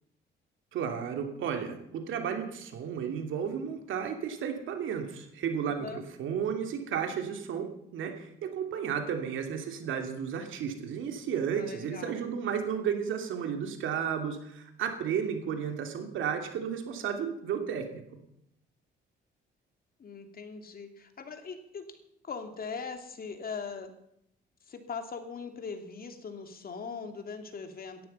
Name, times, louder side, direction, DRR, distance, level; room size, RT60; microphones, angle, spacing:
voice 1, 0.7-5.9 6.2-18.2, right 7 dB, 80° right, 5 dB, 2.9 m, -33 dB
voice 2, 5.6-6.0 11.5-12.2 20.0-22.0 22.2-23.9 24.7-28.0, left 5 dB, 50° left, 6 dB, 2.7 m, -40 dB
17.5 x 14.0 x 5.6 m, 0.77 s
cardioid pair, 90°, 20 cm